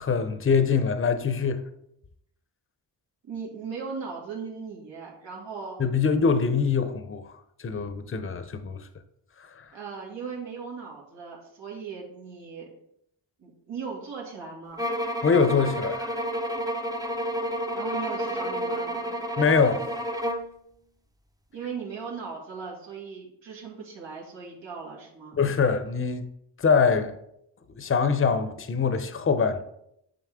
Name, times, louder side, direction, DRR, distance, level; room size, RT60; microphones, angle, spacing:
voice 1, 0.0-1.6 5.8-7.3 7.6-8.9 9.6-9.7 15.2-16.1 19.4-19.9 25.4-26.3 26.6-27.2 27.8-29.6, left 5 dB, 30° left, 0.7 m, -23 dB
voice 2, 3.2-5.8 9.7-12.7 13.4-14.8 17.7-19.2 21.5-25.4, right 5 dB, 80° right, 2.3 m, -38 dB
sound 1, 14.8-20.5, equal, 10° right, 0.6 m, -30 dB
7.6 x 5.3 x 3.6 m
cardioid pair, 75°, 44 cm